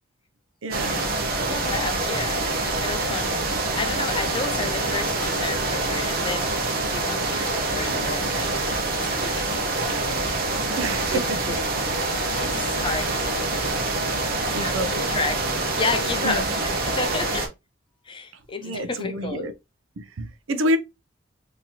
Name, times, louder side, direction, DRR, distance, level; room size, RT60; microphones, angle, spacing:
voice 1, 0.6-1.0 8.2-8.3 10.8-11.4 14.5-14.9 16.2-16.5 18.6-19.5 20.0-20.8, equal, 85° right, 0.6 m, -27 dB
sound 1, 0.7-17.5, right 2 dB, 50° right, 0.9 m, -26 dB
voice 2, 1.5-2.4 2.8-3.4 3.7-6.5 6.9-8.6 9.0-10.0 11.1-11.2 11.5-11.6 12.4-13.5 14.5-15.5 15.8-17.5 18.0-19.5, left 4 dB, 25° left, 0.5 m, -31 dB
3.9 x 2.8 x 2.8 m
head